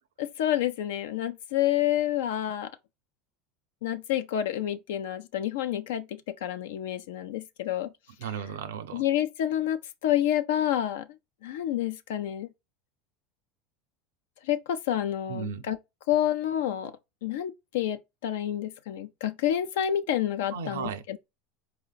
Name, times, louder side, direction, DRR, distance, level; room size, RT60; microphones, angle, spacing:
voice 1, 0.2-2.7 3.8-7.9 8.9-11.1 11.4-12.5 14.4-15.8 16.1-16.9 17.2-21.2, left 11 dB, 75° left, 0.4 m, -29 dB
voice 2, 8.2-9.0 15.3-15.7 20.5-21.0, right 7 dB, 80° right, 0.6 m, -35 dB
4.5 x 2.2 x 3.9 m
hypercardioid pair, 90°, 0 cm